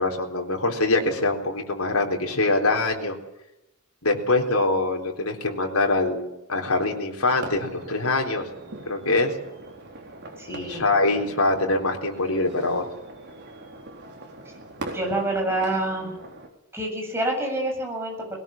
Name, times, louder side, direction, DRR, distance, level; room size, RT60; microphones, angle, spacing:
voice 1, 0.0-3.2 4.0-8.5 8.9-9.3 10.5-12.9, left 2 dB, 80° left, 2 dB, 3.9 m, -24 dB
sound 1, 7.2-16.5, right 2 dB, 55° right, 4.1 m, -41 dB
voice 2, 10.4-10.8 14.9-16.1 16.7-18.4, right 1 dB, 10° right, 1 dB, 7.7 m, -27 dB
21.0 x 18.0 x 7.4 m, 0.89 s
head